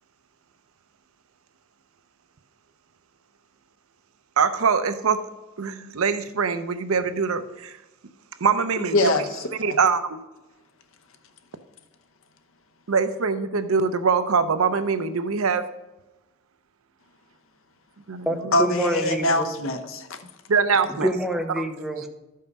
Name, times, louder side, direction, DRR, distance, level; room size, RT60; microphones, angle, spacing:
voice 1, 4.4-5.2 5.6-7.7 8.4-9.0 9.6-10.2 12.9-15.7 18.1-18.5 20.5-21.1, right 5 dB, 80° right, 11 dB, 0.6 m, -23 dB
voice 2, 8.8-9.7 18.5-20.2, left 2 dB, 70° left, 7 dB, 0.9 m, -24 dB
voice 3, 18.3-19.5 20.9-22.1, right 1 dB, ahead, 4 dB, 0.7 m, -26 dB
12.5 x 5.6 x 5.3 m, 1.0 s
head